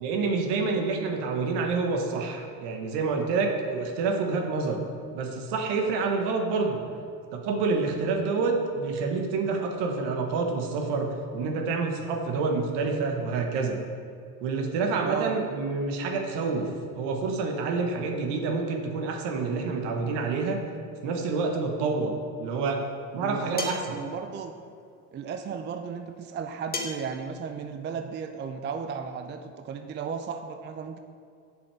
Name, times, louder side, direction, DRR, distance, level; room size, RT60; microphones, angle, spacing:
voice 1, 0.0-4.8 5.1-6.8 7.3-13.8 14.4-16.7 16.9-20.6 21.0-22.8 23.1-23.8, right 4 dB, 60° right, 3 dB, 1.3 m, -28 dB
voice 2, 15.0-15.4 23.2-24.5 25.1-31.0, right 6 dB, 25° right, 7 dB, 0.5 m, -34 dB
sound 1, 23.6-23.9 26.7-27.1, left 3 dB, 20° left, 1.2 m, -33 dB
8.7 x 7.0 x 3.4 m, 2.4 s
hypercardioid pair, 80°, 45 cm